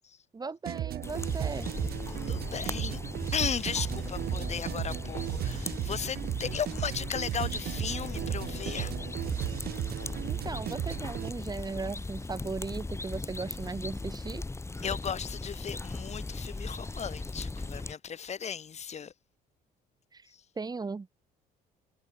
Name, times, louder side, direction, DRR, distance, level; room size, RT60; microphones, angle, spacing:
voice 1, 0.3-1.7 10.3-14.4 20.1-20.2 20.6-21.1, right 4 dB, 25° right, 4.7 m, -37 dB
sound 1, 0.6-11.3, right 13 dB, 70° right, 5.3 m, -35 dB
sound 2, 1.0-17.9, left 3 dB, 15° left, 7.7 m, -38 dB
voice 2, 2.1-3.0 3.3-8.9 9.5-9.6 10.0-10.1 14.8-19.1 20.3-20.4, left 7 dB, 40° left, 4.3 m, -36 dB
cardioid pair, 110°, 17 cm